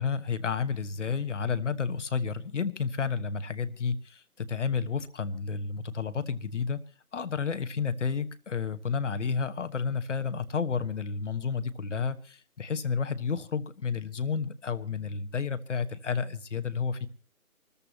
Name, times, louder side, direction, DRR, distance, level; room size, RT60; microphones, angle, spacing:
voice 1, 0.0-6.8 7.1-17.1, left 5 dB, 55° left, 13 dB, 1.2 m, -31 dB
26.5 x 14.0 x 3.0 m, 0.36 s
figure-of-eight pair, 150°, 44 cm